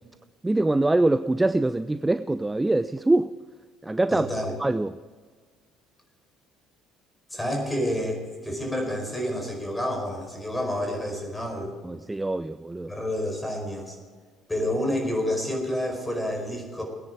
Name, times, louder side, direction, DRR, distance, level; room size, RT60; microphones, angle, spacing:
voice 1, 0.4-3.3 3.8-4.3 4.6-5.0 11.8-12.9, right 2 dB, 15° right, 0.4 m, -24 dB
voice 2, 4.1-4.5 7.3-11.7 12.9-14.0 14.5-16.8, left 1 dB, 10° left, 4.9 m, -29 dB
20.0 x 10.0 x 4.9 m
figure-of-eight pair, 55°, 0 cm